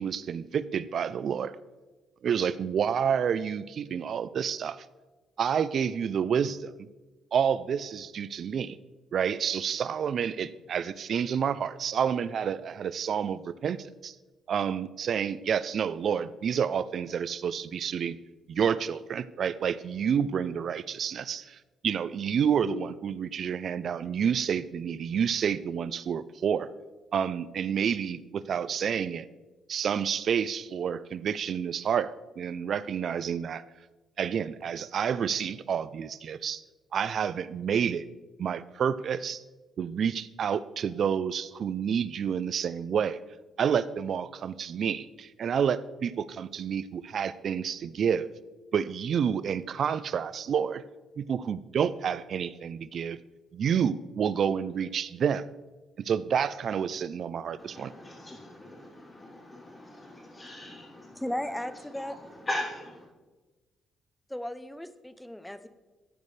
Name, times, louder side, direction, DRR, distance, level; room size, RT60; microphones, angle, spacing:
voice 1, 0.0-1.6 2.2-4.8 5.4-6.7 7.3-8.8 9.1-14.1 14.5-18.2 18.5-26.7 27.1-29.3 29.7-33.6 34.2-36.6 36.9-38.1 38.4-39.4 39.8-43.2 43.6-48.3 48.7-50.8 51.2-53.2 53.5-55.4 56.0-57.9, right 7 dB, 60° right, 16 dB, 0.5 m, -29 dB
voice 2, 57.6-61.3 61.6-61.7 62.0-62.1 62.5-62.7, left 1 dB, 25° left, -7 dB, 3.3 m, -39 dB
voice 3, 61.2-62.1 64.3-65.7, left 1 dB, 5° left, 11 dB, 0.7 m, -35 dB
14.0 x 9.1 x 3.3 m, 1.2 s
cardioid pair, 90°, 0 cm